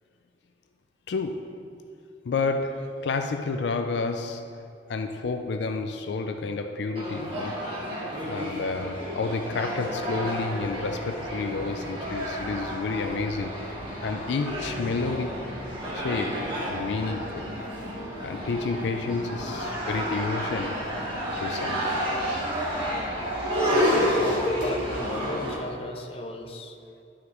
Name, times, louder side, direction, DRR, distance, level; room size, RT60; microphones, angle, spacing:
voice 1, 1.1-1.7 2.3-4.6 4.9-7.6 8.3-13.7 14.0-15.5 15.9-17.5 18.2-20.9 21.3-22.0, left 4 dB, 70° left, 7 dB, 0.4 m, -30 dB
sound 1, 6.9-25.5, equal, 30° right, 1.9 m, -30 dB
sound 2, 10.8-25.1, equal, 50° right, 1.2 m, -47 dB
voice 2, 23.7-26.8, left 2 dB, 35° left, 4 dB, 0.6 m, -35 dB
11.5 x 6.3 x 3.0 m, 2.6 s
head